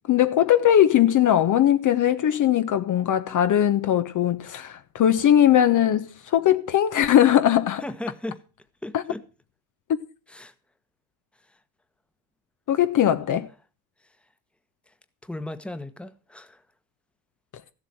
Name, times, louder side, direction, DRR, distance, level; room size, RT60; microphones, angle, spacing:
voice 1, 0.1-7.8 8.9-9.0 12.7-13.5, left 11 dB, 40° left, 1.0 m, -20 dB
voice 2, 7.8-8.4 8.8-9.2 10.3-10.5 13.3-13.4 15.2-16.6, left 1 dB, ahead, 1.2 m, -36 dB
14.5 x 7.7 x 6.1 m
hypercardioid pair, 65°, 49 cm